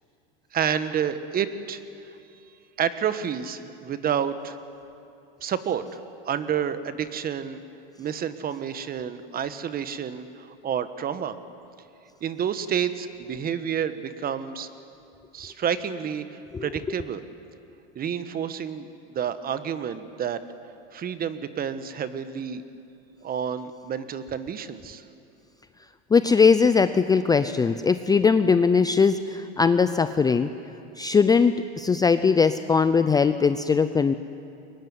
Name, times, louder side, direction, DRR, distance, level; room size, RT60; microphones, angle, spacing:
voice 1, 0.5-1.8 2.8-4.6 5.4-5.8 6.2-7.6 8.0-11.4 12.2-14.7 15.3-17.2 17.9-20.4 20.9-22.6 23.2-25.0, right 8 dB, 30° right, 12 dB, 1.3 m, -29 dB
voice 2, 26.1-30.5 31.0-34.1, left 5 dB, 15° left, 11 dB, 0.5 m, -20 dB
23.5 x 20.0 x 9.8 m, 2.6 s
supercardioid pair, 125°, 30 cm